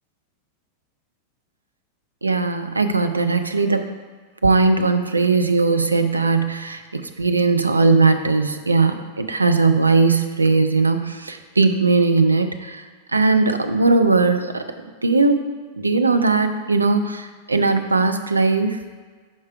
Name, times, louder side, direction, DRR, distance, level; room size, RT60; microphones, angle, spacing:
voice 1, 2.2-3.9 4.4-14.6 15.0-15.3 15.8-18.8, right 3 dB, 80° right, 7 dB, 0.4 m, -19 dB
5.5 x 5.0 x 4.6 m, 1.5 s
figure-of-eight pair, 90°, 0 cm